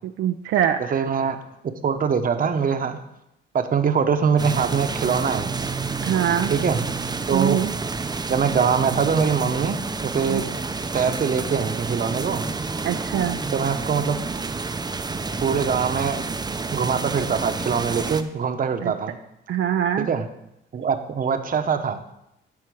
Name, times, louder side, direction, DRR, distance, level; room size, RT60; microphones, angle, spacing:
voice 1, 0.0-1.0 6.0-6.5 7.3-7.7 10.3-10.4 12.8-13.4 18.8-18.9 19.5-20.1, right 9 dB, 75° right, 6 dB, 0.6 m, -23 dB
voice 2, 0.8-1.4 1.8-3.0 3.5-5.5 6.5-6.8 7.3-7.6 8.3-10.5 10.9-12.5 13.5-14.2 15.4-16.3 16.7-19.2 20.0-20.3 20.7-22.0, right 6 dB, 45° right, 7 dB, 1.0 m, -23 dB
sound 1, 4.4-18.2, right 4 dB, 20° right, 0.7 m, -29 dB
12.0 x 4.4 x 6.3 m, 0.83 s
cardioid pair, 90°, 20 cm